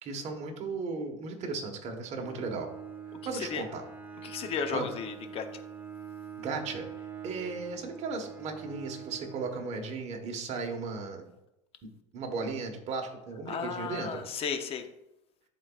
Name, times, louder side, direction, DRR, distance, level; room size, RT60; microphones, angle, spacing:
voice 1, 0.0-2.7 3.2-3.8 4.7-4.8 6.4-6.9 7.2-11.3 12.1-14.2, right 4 dB, 50° right, 3 dB, 1.3 m, -36 dB
Bowed string instrument, 2.2-10.4, right 7 dB, 15° right, 1.3 m, -45 dB
voice 2, 4.2-5.5 13.5-14.9, left 6 dB, 40° left, 7 dB, 0.8 m, -34 dB
11.0 x 4.0 x 2.4 m, 0.89 s
supercardioid pair, 115°, 15 cm